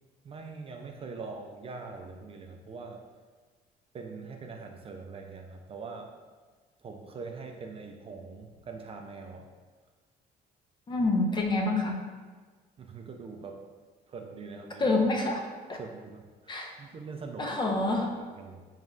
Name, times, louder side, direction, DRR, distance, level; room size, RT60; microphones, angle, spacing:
voice 1, 0.2-3.0 3.9-6.1 6.8-9.5 12.8-13.7 14.1-14.9 15.7-17.6 18.1-18.7, right 4 dB, 35° right, 3 dB, 0.3 m, -43 dB
voice 2, 10.9-12.0 14.8-15.8 16.5-16.7 17.4-18.1, left 2 dB, 25° left, 1 dB, 0.5 m, -27 dB
5.0 x 3.1 x 2.4 m, 1.5 s
cardioid pair, 110°, 17 cm